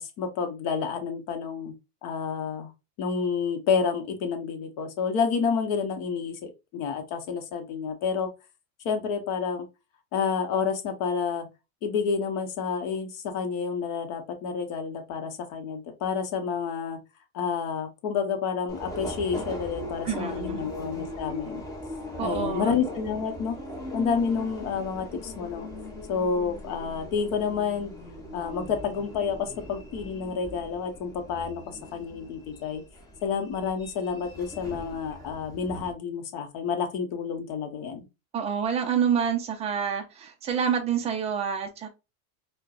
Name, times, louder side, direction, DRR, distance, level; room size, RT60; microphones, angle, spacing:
voice 1, 0.0-1.7 2.0-2.7 3.0-8.3 8.8-9.7 10.1-11.5 11.8-17.0 17.3-21.6 22.2-23.6 23.9-25.7 26.1-27.9 28.3-32.8 33.2-38.0, left 6 dB, 50° left, 5 dB, 0.9 m, -29 dB
Subway metro underground, 18.7-35.9, left 1 dB, 10° left, 0.8 m, -40 dB
voice 2, 20.0-20.7 22.2-22.7 38.3-41.9, right 7 dB, 15° right, 5 dB, 0.3 m, -27 dB
4.4 x 2.2 x 2.4 m, 0.27 s
supercardioid pair, 140°, 43 cm